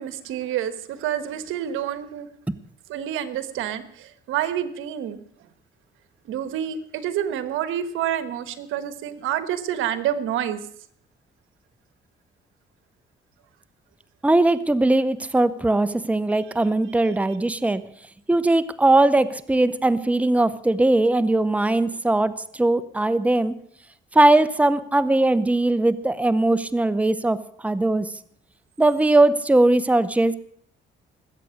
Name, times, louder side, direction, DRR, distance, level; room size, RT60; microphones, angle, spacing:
voice 1, 0.0-2.3 2.9-5.2 6.2-10.6 17.0-17.2, right 10 dB, 90° right, 13 dB, 1.3 m, -28 dB
voice 2, 14.2-17.8 18.3-23.5 24.1-28.1 28.8-30.4, right 2 dB, 5° right, 14 dB, 0.8 m, -20 dB
20.5 x 8.3 x 6.4 m, 0.62 s
cardioid pair, 90°, 20 cm